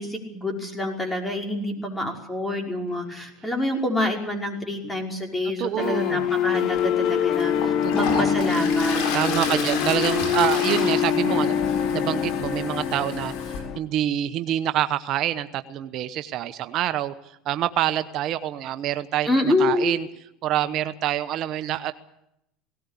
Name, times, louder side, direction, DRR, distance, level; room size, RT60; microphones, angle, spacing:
voice 1, 0.0-9.8 19.3-19.9, left 1 dB, 10° left, 2 dB, 5.4 m, -27 dB
voice 2, 5.4-6.2 7.8-8.3 9.1-20.1 20.4-21.9, right 12 dB, 55° right, 10 dB, 1.0 m, -27 dB
sound 1, 5.8-13.8, left 8 dB, 50° left, 1.4 m, -25 dB
Toilet flush, 6.7-6.8 7.4-13.6, left 5 dB, 70° left, 7.0 m, -31 dB
18.5 x 18.0 x 8.5 m, 0.79 s
supercardioid pair, 115°, 0 cm